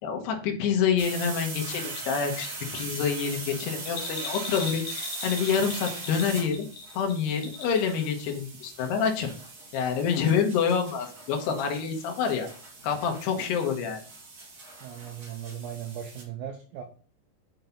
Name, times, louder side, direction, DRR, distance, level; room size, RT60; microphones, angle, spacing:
voice 1, 0.0-6.7 6.9-9.3 9.7-12.5 12.8-14.0, left 6 dB, 70° left, 3 dB, 3.2 m, -27 dB
sound 1, 1.0-16.2, right 3 dB, 40° right, 1.4 m, -40 dB
Bell, 3.8-8.0 8.3-8.4, left 5 dB, 55° left, 2.2 m, -39 dB
voice 2, 14.8-16.8, right 9 dB, 85° right, 4 dB, 2.0 m, -38 dB
7.1 x 6.4 x 3.9 m, 0.40 s
omnidirectional pair, 5.1 m